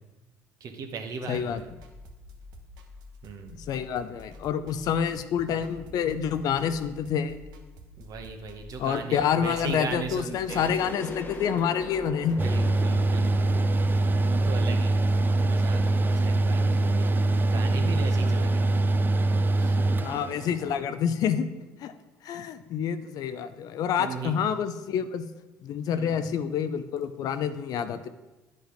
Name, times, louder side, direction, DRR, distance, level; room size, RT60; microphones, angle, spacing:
voice 1, 0.6-1.7 3.2-3.5 8.0-10.7 12.3-14.9 15.4-19.0 19.6-19.9 24.0-24.3 25.9-26.3, right 5 dB, 55° right, 5 dB, 1.3 m, -38 dB
voice 2, 1.3-1.6 3.7-7.4 8.8-12.4 20.0-21.5 21.8-21.9 22.2-25.2 25.6-28.1, left 8 dB, 60° left, 11 dB, 0.6 m, -28 dB
sound 1, 1.3-16.6, left 2 dB, 70° right, 1.1 m, -48 dB
sound 2, 10.5-16.0, left 2 dB, 30° left, 1.0 m, -42 dB
Mechanical fan, 12.4-20.8, right 2 dB, 25° right, 0.5 m, -23 dB
9.9 x 5.3 x 5.2 m, 1.1 s
hypercardioid pair, 70°, 7 cm